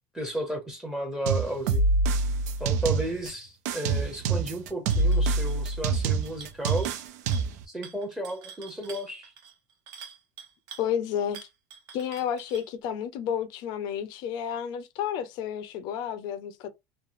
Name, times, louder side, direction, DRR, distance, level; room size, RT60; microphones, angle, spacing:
voice 1, 0.1-1.8 2.6-6.9 7.7-9.3, right 1 dB, 5° right, 0.8 m, -33 dB
sound 1, 1.3-3.3 3.7-7.6, right 3 dB, 80° right, 0.6 m, -25 dB
sound 2, 4.9-5.2 5.5-5.8 6.0-7.0 7.3-7.6 7.8-10.9 11.3-12.7, right 7 dB, 50° right, 1.0 m, -46 dB
voice 2, 10.8-11.5 11.9-16.7, left 9 dB, 55° left, 0.6 m, -31 dB
3.2 x 2.1 x 2.5 m
supercardioid pair, 150°, 9 cm